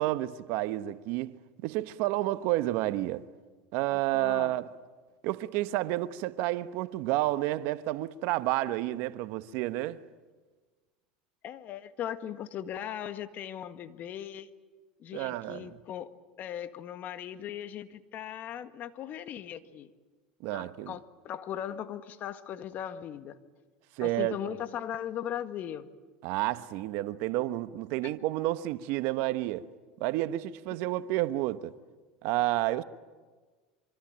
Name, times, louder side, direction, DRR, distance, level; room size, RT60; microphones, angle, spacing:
voice 1, 0.0-3.3 3.7-4.7 5.2-10.0 15.1-15.7 20.4-20.9 24.0-24.4 26.2-29.7 30.0-31.7 32.2-32.8, right 16 dB, 65° right, 1.1 m, -30 dB
voice 2, 3.9-4.5 11.4-14.5 15.0-16.1 16.4-19.9 20.5-23.4 24.0-25.9 28.0-28.1, left 10 dB, 45° left, 1.8 m, -38 dB
25.0 x 25.0 x 8.9 m
supercardioid pair, 100°, 4 cm